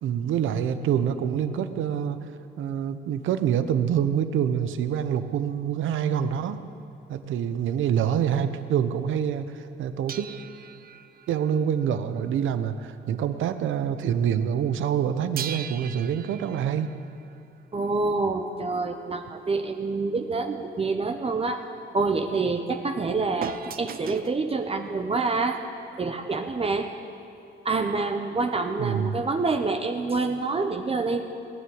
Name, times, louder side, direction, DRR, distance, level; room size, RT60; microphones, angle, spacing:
voice 1, 0.0-2.3 2.6-6.7 7.1-10.3 11.3-16.9 28.8-29.2, right 8 dB, 80° right, 10 dB, 0.9 m, -26 dB
sound 1, 10.1-13.2 13.5-13.7 15.4-18.1 23.4-24.4 25.3-25.4, right 9 dB, 50° right, 0.5 m, -40 dB
voice 2, 17.7-21.6 21.9-25.6 26.0-26.9 27.6-31.3, right 3 dB, 30° right, 5 dB, 1.0 m, -27 dB
18.5 x 9.7 x 7.9 m, 2.8 s
cardioid pair, 90°, 20 cm